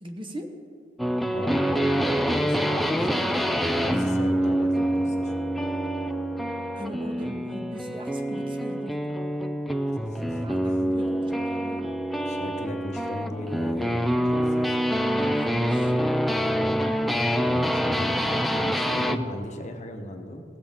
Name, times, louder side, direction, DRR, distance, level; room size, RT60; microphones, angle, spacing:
voice 1, 0.0-0.5 6.7-9.0 10.4-11.8 15.1-15.9, equal, 25° right, 4 dB, 0.9 m, -40 dB
sound 1, 1.0-19.2, equal, ahead, 0.3 m, -26 dB
voice 2, 1.3-5.3 10.0-10.4 12.3-14.8 17.1-20.4, left 1 dB, 40° left, 4 dB, 0.9 m, -37 dB
17.5 x 7.8 x 3.5 m, 2.3 s
head